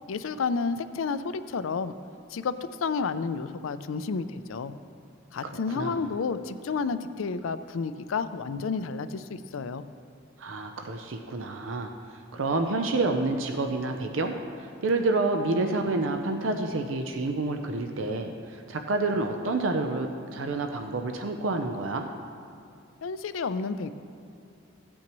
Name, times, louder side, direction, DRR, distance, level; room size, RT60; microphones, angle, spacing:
voice 1, 0.1-1.9 2.3-4.7 5.3-9.8 23.0-23.9, left 5 dB, 80° left, 12 dB, 0.4 m, -31 dB
voice 2, 5.4-6.1 10.4-11.9 12.3-22.1, right 3 dB, 70° right, 5 dB, 0.6 m, -29 dB
16.0 x 8.6 x 3.0 m, 2.5 s
head